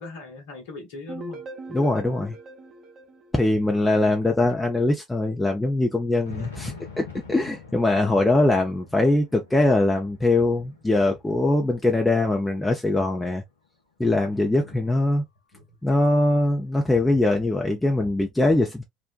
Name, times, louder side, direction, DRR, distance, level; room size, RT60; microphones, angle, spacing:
voice 1, 0.0-1.4 3.7-4.0 14.6-14.9 15.5-15.7, left 3 dB, 70° left, 1.0 m, -40 dB
sound 1, 1.1-4.0, right 2 dB, 45° right, 0.8 m, -41 dB
voice 2, 1.7-2.3 3.3-13.4 14.0-15.2 15.8-18.8, left 2 dB, 10° left, 0.6 m, -22 dB
sound 2, 2.6-2.7 3.6-3.7 4.1-4.2 5.9-12.3 12.7-13.7, left 5 dB, 85° left, 0.6 m, -44 dB
2.6 x 2.1 x 2.4 m
figure-of-eight pair, 60°, 0 cm